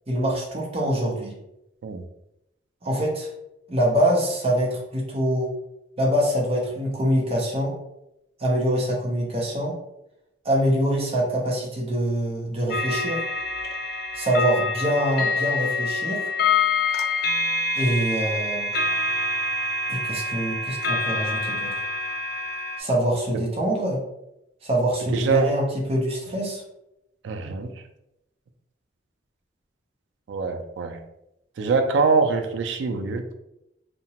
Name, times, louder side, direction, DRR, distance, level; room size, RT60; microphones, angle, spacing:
voice 1, 0.1-1.4 2.8-3.3 3.7-5.5 6.0-7.7 8.4-9.7 10.4-13.2 14.1-16.3 17.8-18.7 19.9-21.8 22.8-24.0 24.6-26.6, equal, 35° right, -2 dB, 0.7 m, -24 dB
sound 1, 12.7-22.8, left 3 dB, 55° left, 0.3 m, -26 dB
voice 2, 25.1-25.5 27.2-27.7 30.3-31.0 31.6-33.2, right 4 dB, 80° right, 6 dB, 0.3 m, -23 dB
2.8 x 2.1 x 2.8 m, 0.86 s
head